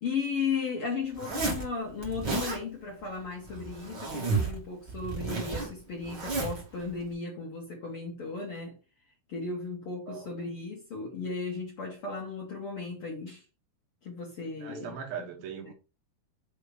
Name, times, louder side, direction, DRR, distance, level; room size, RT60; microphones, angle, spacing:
voice 1, 0.0-8.8 9.3-13.4 14.0-15.0 15.6-15.7, left 5 dB, 80° left, 1.2 m, -35 dB
Zipper (clothing), 1.1-1.7 2.0-2.6 3.4-4.6 4.9-6.6, right 4 dB, 35° right, 1.8 m, -32 dB
voice 2, 14.6-15.7, right 8 dB, 70° right, 2.9 m, -40 dB
6.9 x 3.1 x 5.1 m
omnidirectional pair, 4.8 m